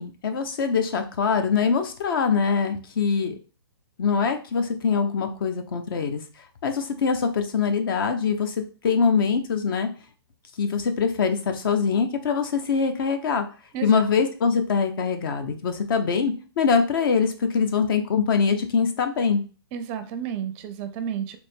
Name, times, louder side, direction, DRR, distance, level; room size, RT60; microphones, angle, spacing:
voice 1, 0.0-3.3 4.0-6.2 6.6-8.5 8.8-9.9 10.6-13.4 13.8-19.4, left 5 dB, 60° left, 7 dB, 0.9 m, -23 dB
voice 2, 13.7-14.1 19.7-21.4, right 8 dB, 30° right, 9 dB, 0.4 m, -31 dB
4.2 x 3.0 x 3.6 m, 0.37 s
hypercardioid pair, 150°, 13 cm